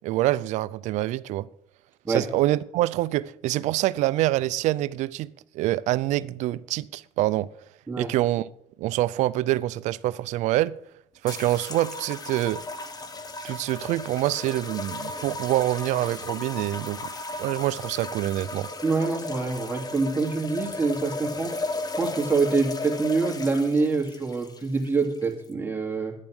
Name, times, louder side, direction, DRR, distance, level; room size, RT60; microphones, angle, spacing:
voice 1, 0.0-1.5 2.1-7.5 8.0-8.4 8.8-10.8 11.2-12.6 13.4-17.1 17.4-18.7, right 15 dB, 80° right, 0.4 m, -26 dB
sound 1, 11.3-25.5, left 2 dB, 35° left, 1.4 m, -35 dB
voice 2, 18.8-21.6 22.0-26.1, right 4 dB, 15° right, 2.6 m, -25 dB
10.5 x 10.0 x 6.2 m
cardioid pair, 95°, 12 cm